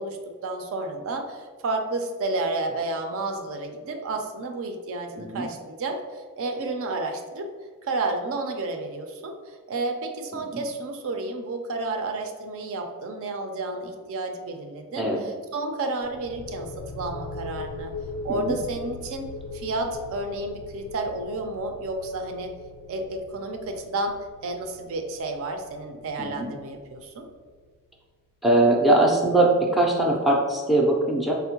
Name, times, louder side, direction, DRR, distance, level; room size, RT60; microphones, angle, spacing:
voice 1, 0.0-7.5 7.8-17.9 18.2-19.3 19.5-22.5 22.9-24.2 24.4-27.3, right 2 dB, 65° right, 5 dB, 0.4 m, -31 dB
sound 1, 16.0-27.6, left 3 dB, 85° left, 0.4 m, -40 dB
voice 2, 28.4-31.3, right 2 dB, ahead, -2 dB, 0.4 m, -21 dB
4.3 x 2.1 x 2.8 m, 1.5 s
head